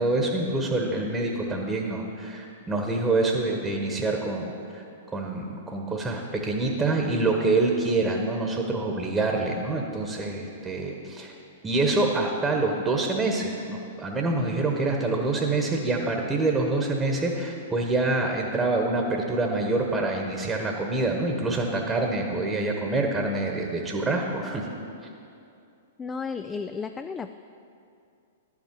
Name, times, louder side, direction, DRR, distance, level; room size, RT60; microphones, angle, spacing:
voice 1, 0.0-4.8 5.1-11.3 11.6-24.7, right 2 dB, 15° right, 2 dB, 1.1 m, -26 dB
voice 2, 26.0-27.3, left 5 dB, 15° left, 9 dB, 0.3 m, -33 dB
11.0 x 8.5 x 4.6 m, 2.5 s
figure-of-eight pair, 105°, 0 cm